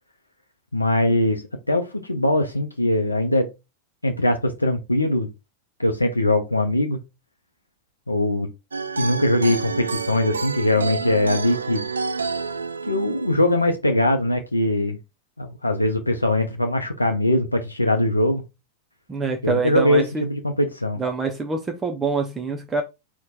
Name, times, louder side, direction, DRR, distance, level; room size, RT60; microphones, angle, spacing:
voice 1, 0.7-3.5 4.0-5.3 5.8-7.0 8.1-8.5 9.0-11.8 12.9-15.0 15.4-18.4 19.4-21.0, left 1 dB, 85° left, 0.5 m, -21 dB
sound 1, 8.7-13.8, right 4 dB, 75° right, 0.3 m, -29 dB
voice 2, 19.1-20.2 21.0-22.8, right 4 dB, 15° right, 0.5 m, -25 dB
4.3 x 2.1 x 3.9 m
figure-of-eight pair, 90°, 0 cm